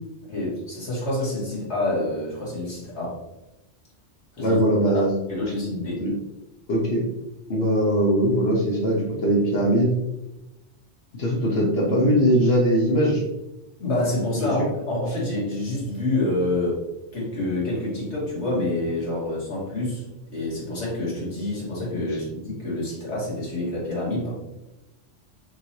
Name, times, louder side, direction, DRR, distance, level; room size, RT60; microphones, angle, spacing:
voice 1, 0.2-3.2 4.4-4.6 4.9-6.0 13.8-16.8 17.1-20.0 20.3-24.3, left 1 dB, 90° left, -6 dB, 2.0 m, -27 dB
voice 2, 4.4-5.1 6.0-6.1 6.7-7.0 7.5-9.9 11.1-13.2 14.3-14.5 22.1-22.2, equal, 65° left, -3 dB, 1.1 m, -21 dB
5.9 x 3.1 x 2.8 m, 0.98 s
omnidirectional pair, 1.1 m